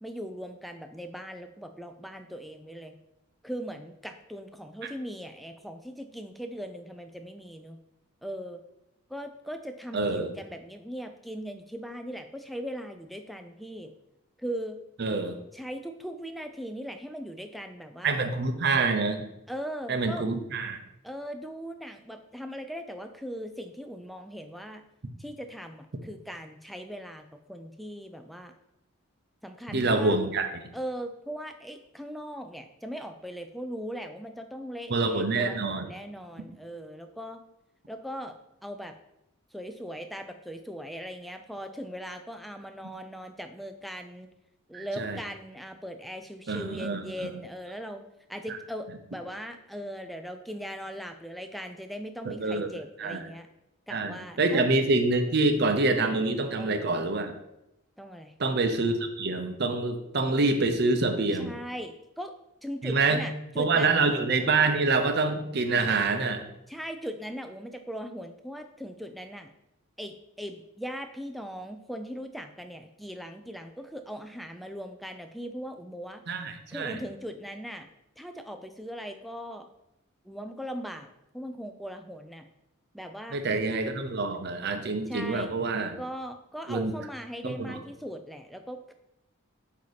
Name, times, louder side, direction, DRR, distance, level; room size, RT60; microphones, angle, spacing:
voice 1, 0.0-3.0 3.4-7.8 8.2-8.6 9.1-13.9 14.4-14.8 15.5-18.2 19.5-20.3 21.0-24.8 25.2-28.5 29.4-30.2 30.7-37.4 37.9-38.4 38.6-38.9 39.5-44.3 44.7-48.0 48.3-53.5 53.9-54.7 56.6-56.9 58.0-58.3 61.3-62.3 62.6-63.9 66.7-69.5 70.0-76.2 76.7-77.9 78.2-79.7 80.3-82.5 82.9-83.4 85.1-85.5 86.0-88.9, equal, ahead, 7 dB, 0.3 m, -39 dB
voice 2, 9.9-10.3 15.0-15.4 18.0-19.2 19.9-20.8 29.7-30.5 34.9-35.9 44.7-45.2 46.5-47.3 52.2-52.7 53.0-53.2 53.9-57.3 58.4-61.5 62.8-63.2 63.6-66.4 76.3-77.0 83.3-86.0 86.7-86.9 87.4-87.8, right 3 dB, 50° right, 7 dB, 0.6 m, -26 dB
7.9 x 2.8 x 4.8 m, 0.87 s
head